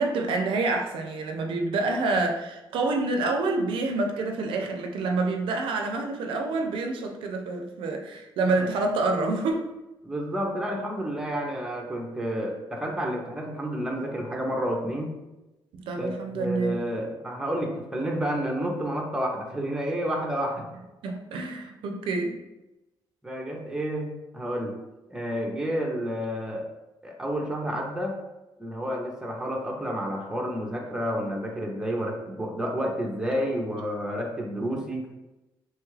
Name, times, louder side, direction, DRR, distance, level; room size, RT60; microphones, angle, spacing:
voice 1, 0.0-9.7 15.9-16.8 21.0-22.4, right 3 dB, 80° right, 3 dB, 0.4 m, -27 dB
voice 2, 10.0-15.1 15.9-20.7 23.2-24.8 25.1-26.7 27.0-28.2 28.6-35.1, equal, 5° right, 0 dB, 0.5 m, -30 dB
3.0 x 2.3 x 3.1 m, 0.99 s
cardioid pair, 135°, 9 cm